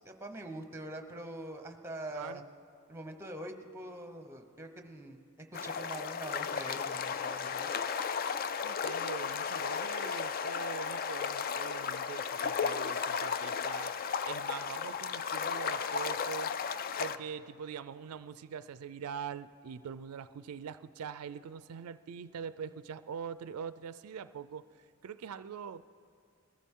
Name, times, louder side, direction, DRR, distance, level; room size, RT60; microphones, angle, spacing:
voice 1, 0.0-2.4 2.9-7.7, right 1 dB, 10° right, 6 dB, 0.8 m, -44 dB
voice 2, 2.1-2.4 8.6-13.9 14.2-16.5 17.0-25.9, right 7 dB, 80° right, 14 dB, 0.4 m, -43 dB
sound 1, 5.5-17.2, left 6 dB, 40° left, 0.4 m, -34 dB
21.5 x 14.5 x 3.7 m, 2.6 s
head